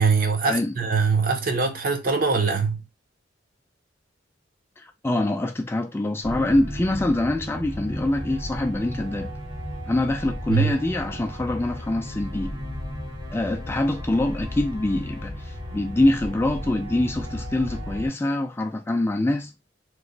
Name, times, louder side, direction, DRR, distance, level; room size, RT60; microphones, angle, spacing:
voice 1, 0.0-2.8 10.5-10.7, right 4 dB, 50° right, 0.7 m, -22 dB
voice 2, 4.8-9.3 9.9-12.6 13.3-19.5, left 1 dB, 15° left, 0.3 m, -24 dB
sound 1, 6.2-18.1, equal, 80° right, 1.7 m, -34 dB
3.0 x 2.1 x 3.9 m
head